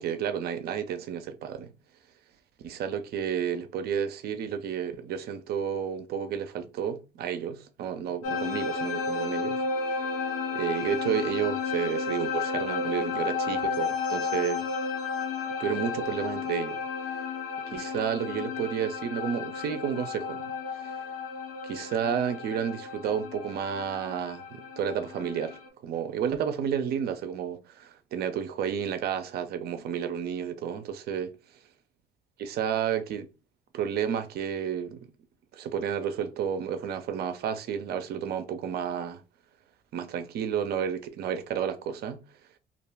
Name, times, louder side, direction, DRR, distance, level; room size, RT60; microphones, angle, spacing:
voice 1, 0.0-1.7 2.6-9.6 10.5-14.6 15.6-16.8 17.7-20.5 20.8-20.9 21.6-31.3 32.4-33.3 33.7-35.1 35.5-39.2 39.9-42.2, right 8 dB, 60° right, 0.5 m, -31 dB
sound 1, 8.2-25.7, left 5 dB, 90° left, 0.8 m, -32 dB
2.6 x 2.2 x 3.3 m
hypercardioid pair, 65°, 18 cm